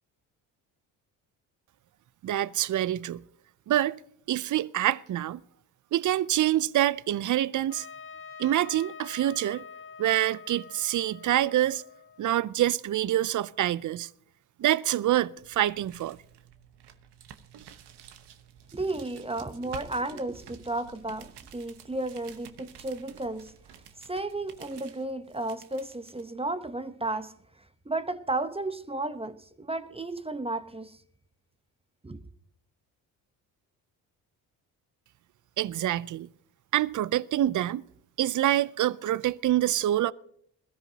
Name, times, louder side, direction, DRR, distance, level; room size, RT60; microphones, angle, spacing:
voice 1, 2.2-3.2 3.7-4.0 4.3-5.4 5.9-7.9 8.4-9.7 10.0-11.8 12.2-14.1 14.6-16.2 35.6-36.3 36.7-37.8 38.2-40.1, right 13 dB, 45° right, 0.6 m, -26 dB
Trumpet, 7.7-12.5, left 6 dB, 30° left, 1.2 m, -46 dB
sound 1, 15.4-26.2, right 9 dB, 65° right, 1.2 m, -51 dB
voice 2, 18.7-23.5 24.0-27.3 27.9-31.0 32.0-32.2, right 2 dB, 15° right, 0.8 m, -33 dB
21.0 x 13.5 x 2.8 m
supercardioid pair, 55°, 42 cm